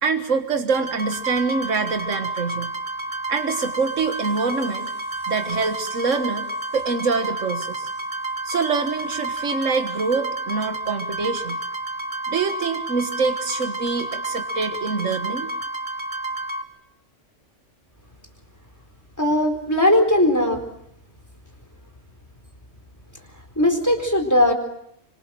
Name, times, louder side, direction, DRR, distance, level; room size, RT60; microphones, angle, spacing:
voice 1, 0.0-2.7 3.3-6.5 6.7-7.9 8.4-11.6 12.3-15.5, right 4 dB, 80° right, 7 dB, 1.9 m, -25 dB
sound 1, 0.7-16.6, right 2 dB, 40° right, 1.9 m, -30 dB
voice 2, 19.2-20.6 23.6-24.5, left 1 dB, 15° left, 5 dB, 4.3 m, -18 dB
26.5 x 25.5 x 7.7 m, 0.74 s
omnidirectional pair, 1.3 m